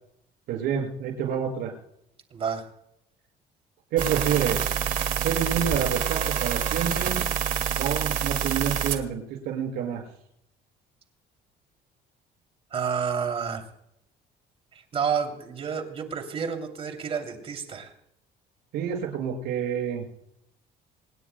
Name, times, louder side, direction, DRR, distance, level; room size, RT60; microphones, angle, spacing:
voice 1, 0.5-1.7 3.9-4.6 5.2-7.2 7.8-10.0 18.7-20.1, right 8 dB, 75° right, 2 dB, 6.0 m, -28 dB
voice 2, 2.3-2.7 12.7-13.6 14.9-17.9, right 6 dB, 35° right, 5 dB, 2.9 m, -30 dB
sound 1, 4.0-9.0, right 8 dB, 55° right, 1.9 m, -27 dB
26.0 x 20.0 x 2.2 m, 0.79 s
cardioid pair, 150°, 17 cm